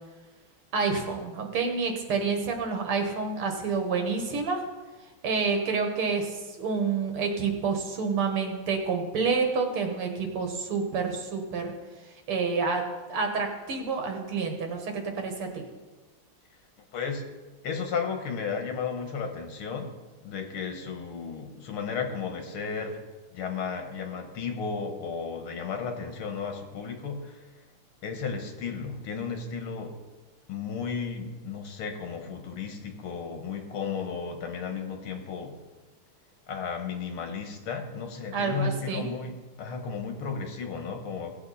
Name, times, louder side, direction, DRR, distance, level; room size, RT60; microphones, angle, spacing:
voice 1, 0.7-4.6 5.2-11.7 12.3-15.6 38.3-39.1, right 5 dB, 85° right, 3 dB, 2.4 m, -28 dB
voice 2, 16.9-17.3 17.6-19.9 20.2-23.0 23.3-27.5 28.0-30.0 30.5-35.6 36.5-41.4, left 5 dB, 80° left, 4 dB, 2.2 m, -34 dB
17.0 x 8.0 x 4.2 m, 1.2 s
omnidirectional pair, 2.3 m